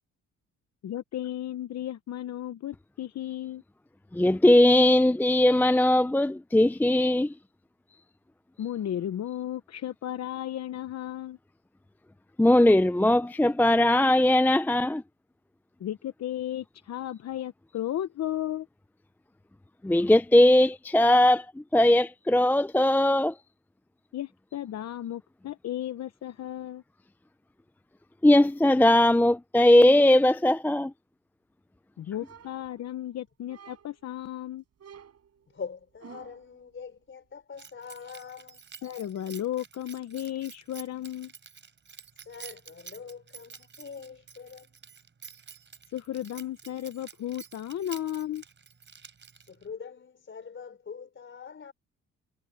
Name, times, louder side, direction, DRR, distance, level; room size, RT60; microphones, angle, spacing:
voice 1, 0.8-3.6 8.6-11.4 15.8-18.7 24.1-26.8 32.0-34.6 38.8-41.3 45.9-48.4, left 12 dB, 60° left, 1.0 m, -34 dB
voice 2, 4.1-7.3 12.4-15.0 19.8-21.5 21.7-23.3 28.2-30.9, left 1 dB, 5° left, 0.6 m, -20 dB
sound 1, 32.2-33.1 33.5-34.1 34.8-36.6, right 8 dB, 55° right, 7.2 m, -51 dB
voice 3, 35.5-38.7 42.3-44.8 49.4-51.7, left 6 dB, 40° left, 4.1 m, -43 dB
Keys jangling, 37.6-49.7, right 7 dB, 40° right, 3.9 m, -49 dB
cardioid pair, 90°, 30 cm